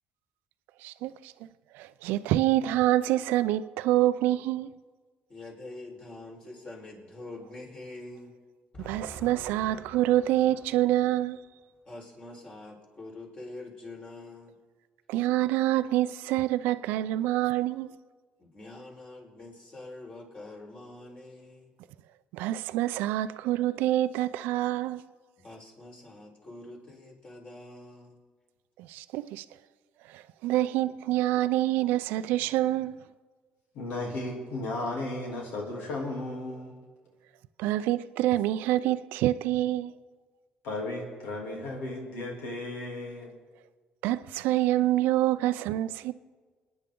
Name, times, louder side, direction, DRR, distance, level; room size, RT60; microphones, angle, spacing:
voice 1, 0.8-1.3 1.7-4.7 8.8-11.4 15.1-18.0 22.3-25.0 28.8-29.4 30.1-33.0 37.6-39.9 44.0-46.1, right 14 dB, 85° right, 0.4 m, -26 dB
voice 2, 5.3-8.4 8.7-11.0 11.8-14.5 18.4-21.7 25.4-28.2, left 2 dB, 35° left, 4.5 m, -45 dB
voice 3, 33.7-36.8 40.6-43.3, left 2 dB, 85° left, 3.0 m, -35 dB
28.5 x 9.8 x 3.8 m
supercardioid pair, 80°, 3 cm